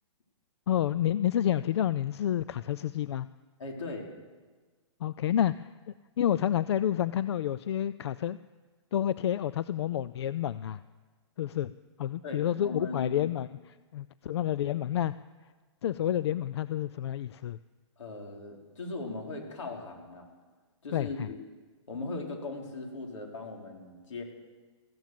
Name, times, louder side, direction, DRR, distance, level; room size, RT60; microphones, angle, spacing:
voice 1, 0.7-3.3 5.0-5.7 6.2-8.4 8.9-10.8 11.4-11.7 12.0-15.1 15.8-17.6 20.9-21.3, left 11 dB, 60° left, 16 dB, 0.4 m, -29 dB
voice 2, 3.6-4.1 12.2-13.3 18.0-20.3 20.8-21.4 21.9-24.2, left 3 dB, 85° left, 1 dB, 3.9 m, -39 dB
15.0 x 12.5 x 7.6 m, 1.4 s
hypercardioid pair, 160°, 16 cm